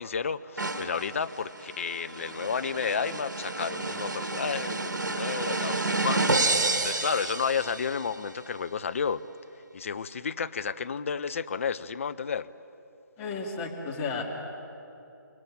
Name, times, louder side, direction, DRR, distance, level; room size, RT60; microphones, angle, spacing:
voice 1, 0.0-9.2 9.7-12.5, left 6 dB, 45° left, 12 dB, 0.7 m, -32 dB
sound 1, 0.6-8.1, right 3 dB, 60° right, 2.0 m, -30 dB
voice 2, 13.2-14.2, left 4 dB, 15° left, -1 dB, 2.6 m, -33 dB
29.0 x 19.5 x 8.9 m, 2.9 s
figure-of-eight pair, 145°, 10 cm